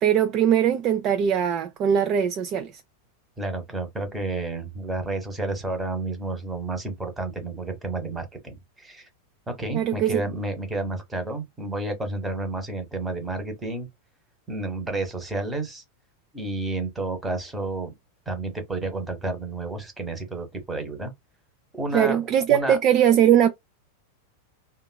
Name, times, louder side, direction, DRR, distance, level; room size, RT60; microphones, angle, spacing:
voice 1, 0.0-2.7 9.7-10.2 21.9-23.5, right 9 dB, 35° right, 0.3 m, -20 dB
voice 2, 3.4-9.1 9.5-13.9 14.5-15.8 16.3-17.9 18.3-21.1 21.7-22.2 22.5-22.8, right 2 dB, 10° right, 0.9 m, -30 dB
2.8 x 2.2 x 2.2 m
figure-of-eight pair, 90°, 0 cm